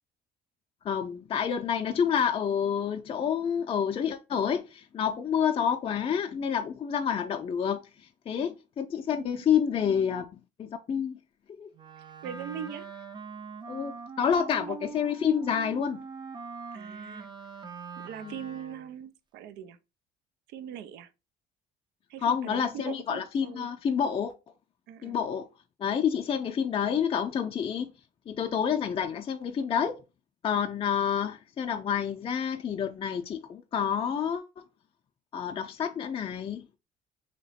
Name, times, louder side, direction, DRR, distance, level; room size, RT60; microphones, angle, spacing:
voice 1, 0.8-10.2 10.6-11.2 11.5-11.7 13.7-13.9 14.2-16.0 18.2-18.3 22.2-24.3 25.0-25.5 25.8-27.9 28.3-30.0 30.4-34.6 35.3-36.7, left 8 dB, 35° left, 0.4 m, -28 dB
voice 2, 9.1-9.6 12.0-13.1 14.4-14.5 16.7-17.3 18.0-19.8 20.5-21.1 22.1-23.7 24.9-25.2 31.1-31.2, right 9 dB, 80° right, 0.4 m, -42 dB
Wind instrument woodwind instrument, 11.7-19.0, right 5 dB, 25° right, 0.5 m, -42 dB
2.9 x 2.9 x 4.1 m
cardioid pair, 110°, 17 cm